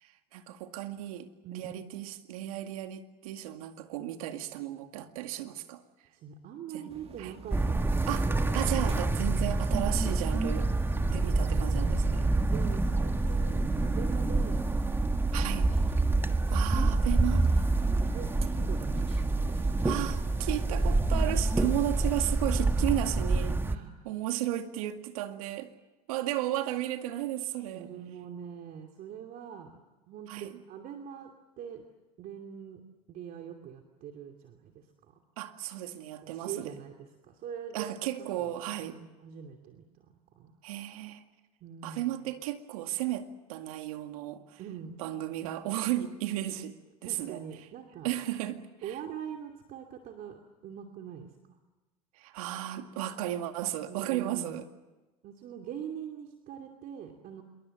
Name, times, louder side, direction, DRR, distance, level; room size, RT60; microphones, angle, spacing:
voice 1, 0.3-5.8 6.7-6.9 7.2-7.3 8.1-10.7 11.1-12.3 15.3-15.7 16.5-17.5 19.8-23.6 24.1-25.7 26.1-27.9 30.3-30.5 35.4-36.7 37.7-39.0 40.6-41.2 41.8-44.6 45.0-46.8 47.0-47.4 48.0-49.0 52.2-54.6, right 13 dB, 75° right, 7 dB, 2.1 m, -34 dB
voice 2, 1.4-1.7 6.1-8.8 11.3-12.0 12.3-14.6 16.1-16.7 17.8-19.1 23.6-24.1 27.7-29.8 30.1-31.8 32.2-32.8 33.1-35.2 36.2-37.9 38.2-39.9 40.3-40.5 41.6-42.2 44.6-45.0 47.0-48.1 48.8-51.3 53.9-54.6 55.2-57.4, right 8 dB, 50° right, 4 dB, 2.7 m, -43 dB
sound 1, 6.9-21.1, right 4 dB, 35° right, 2.0 m, -44 dB
sound 2, 7.5-23.8, right 2 dB, 10° right, 1.5 m, -27 dB
27.5 x 23.5 x 7.8 m, 1.1 s
hypercardioid pair, 85°, 18 cm